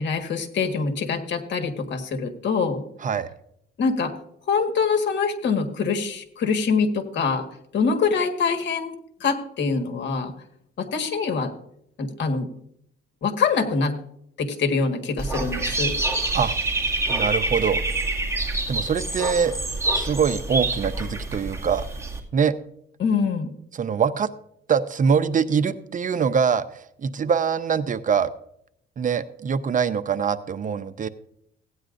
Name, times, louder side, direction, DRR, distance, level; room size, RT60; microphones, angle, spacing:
voice 1, 0.0-2.8 3.8-4.1 4.5-7.4 7.7-8.9 9.2-10.3 10.8-11.5 12.0-12.5 13.2-13.9 14.4-15.9 23.0-23.5, left 5 dB, 65° left, 5 dB, 1.6 m, -24 dB
Dog / Bird, 15.2-22.2, right 2 dB, 15° right, 2.1 m, -26 dB
voice 2, 17.1-17.8 18.7-19.6 19.9-21.8 22.3-22.5 23.7-24.3 24.7-28.3 29.0-31.1, right 6 dB, 40° right, 13 dB, 0.6 m, -23 dB
16.0 x 9.5 x 2.6 m, 0.71 s
cardioid pair, 90°, 20 cm